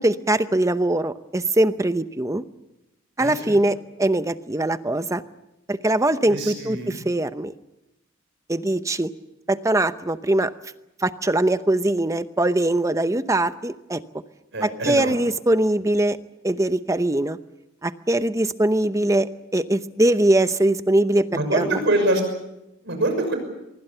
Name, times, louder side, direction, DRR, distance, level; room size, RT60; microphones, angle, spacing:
voice 1, 0.0-2.4 3.2-5.2 5.7-7.5 8.5-9.1 9.5-10.5 11.0-14.0 14.6-16.2 16.4-17.4 17.8-21.8, right 1 dB, 15° right, 12 dB, 0.8 m, -22 dB
voice 2, 3.2-3.6 6.3-7.0 14.5-15.1 21.3-22.2 22.8-23.4, right 1 dB, 60° right, 6 dB, 6.2 m, -24 dB
25.0 x 23.0 x 6.9 m, 0.90 s
head